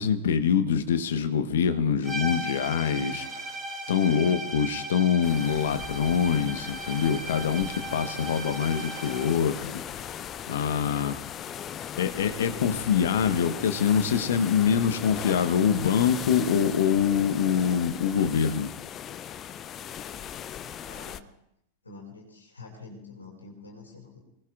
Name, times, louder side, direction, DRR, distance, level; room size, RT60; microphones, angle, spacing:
voice 1, 0.0-3.6 3.9-10.1 10.5-11.2 12.0-18.7, left 7 dB, 60° left, 10 dB, 1.1 m, -25 dB
sound 1, 2.0-9.4, right 1 dB, 10° right, 3.3 m, -37 dB
sound 2, 5.2-21.2, left 9 dB, 30° left, 0.5 m, -39 dB
voice 2, 20.8-21.2 21.8-24.2, left 3 dB, 75° left, 0 dB, 5.3 m, -46 dB
28.0 x 19.5 x 2.4 m, 0.75 s
figure-of-eight pair, 90°, 0 cm